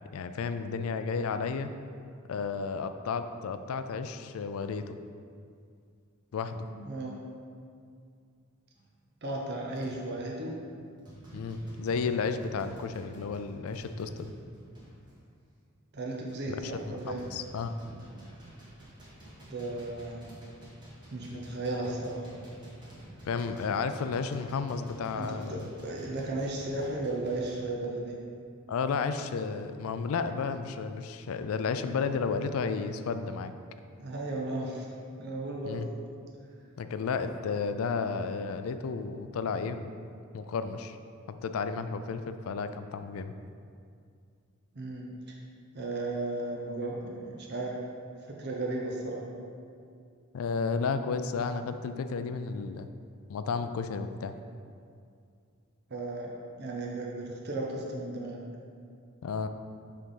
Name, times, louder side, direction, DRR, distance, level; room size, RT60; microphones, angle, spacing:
voice 1, 0.1-1.7 2.3-5.0 6.3-6.7 11.3-14.3 16.5-17.7 23.2-25.7 28.7-33.5 35.6-35.9 36.8-39.9 40.3-41.0 41.3-43.4 50.3-52.9 53.3-54.3 59.2-59.5, left 5 dB, 80° left, 10 dB, 0.4 m, -32 dB
voice 2, 6.7-7.2 9.2-10.6 15.9-17.3 19.5-20.2 21.1-22.2 25.1-28.2 34.0-34.9 35.2-35.9 44.7-45.3 45.7-47.8 48.3-49.3 55.9-56.3 56.6-58.4, right 2 dB, 50° right, -2 dB, 0.8 m, -35 dB
sound 1, 8.8-9.0 9.7-10.1 10.6-10.8 11.1-15.2 15.8-27.7, right 1 dB, 20° right, 1.3 m, -49 dB
6.0 x 3.4 x 5.5 m, 2.3 s
head